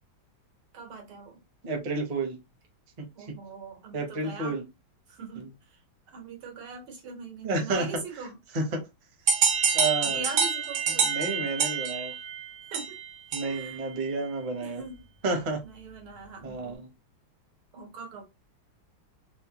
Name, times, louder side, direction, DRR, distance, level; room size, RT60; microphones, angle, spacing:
voice 1, 0.7-1.4 3.2-4.6 5.1-5.8 6.1-8.4 9.5-11.1 12.7-13.0 13.4-13.9 14.6-15.0 15.7-16.9 17.7-18.2, right 4 dB, 85° right, 2.1 m, -42 dB
voice 2, 1.6-2.4 3.0-3.1 3.9-4.6 5.3-5.5 7.4-7.9 8.5-8.8 9.7-10.3 11.0-12.1 13.3-14.8 15.2-15.6 16.4-16.9, right 3 dB, 40° right, 0.6 m, -30 dB
sound 1, 9.3-13.8, right 6 dB, 65° right, 0.9 m, -27 dB
4.3 x 2.2 x 2.9 m
omnidirectional pair, 2.3 m